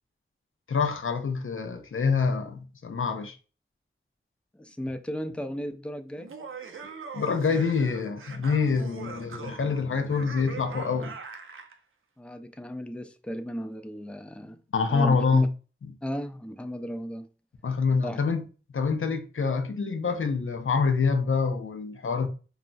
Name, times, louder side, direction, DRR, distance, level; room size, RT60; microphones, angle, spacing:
voice 1, 0.7-3.4 7.1-11.1 14.7-15.5 17.6-18.4 18.7-22.3, left 5 dB, 80° left, 0.5 m, -26 dB
voice 2, 4.5-6.3 12.2-14.6 14.9-15.5 16.0-17.3 18.0-18.2, equal, 5° left, 0.4 m, -35 dB
Laughter, 6.2-11.8, right 5 dB, 80° right, 0.4 m, -42 dB
2.3 x 2.0 x 3.8 m
wide cardioid pair, 40°, 21 cm